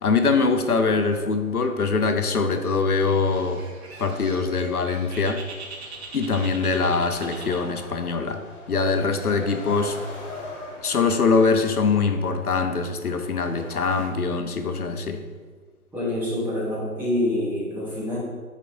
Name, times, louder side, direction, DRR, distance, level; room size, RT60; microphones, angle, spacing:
voice 1, 0.0-3.6 4.0-5.4 6.1-8.4 8.7-10.0 10.8-15.3, left 4 dB, 80° left, 7 dB, 0.7 m, -23 dB
sound 1, 0.7-14.1, left 3 dB, 55° left, 1.6 m, -44 dB
Bird, 3.1-8.1, right 3 dB, 45° right, 1.0 m, -42 dB
voice 2, 15.9-18.2, left 1 dB, 5° right, -8 dB, 0.9 m, -26 dB
9.0 x 4.6 x 2.6 m, 1.5 s
figure-of-eight pair, 125°, 44 cm